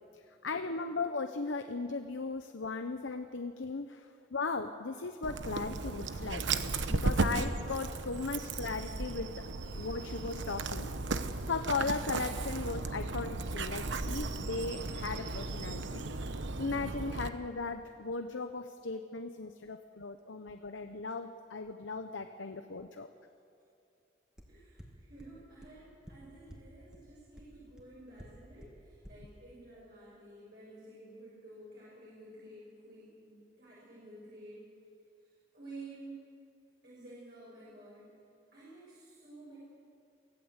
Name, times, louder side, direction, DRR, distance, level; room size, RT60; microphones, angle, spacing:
voice 1, 0.4-6.4 6.9-9.3 9.8-10.9 11.2-16.0 16.6-23.1, left 3 dB, 85° left, 7 dB, 0.9 m, -37 dB
Dog, 5.2-17.3, right 3 dB, 75° right, 1.0 m, -35 dB
sound 1, 24.4-24.5 24.8-24.9 25.2-25.3 25.6-25.7 26.1-26.2 26.5-26.6 26.9-27.0 27.4-27.5 27.8-27.9 28.2-28.3 28.6-28.7 29.0-29.1, equal, 5° right, 2.3 m, -49 dB
voice 2, 24.5-34.6 35.5-36.2 36.8-38.1 38.5-39.6, right 2 dB, 55° right, -8 dB, 6.5 m, -51 dB
24.0 x 16.5 x 8.1 m, 2.5 s
head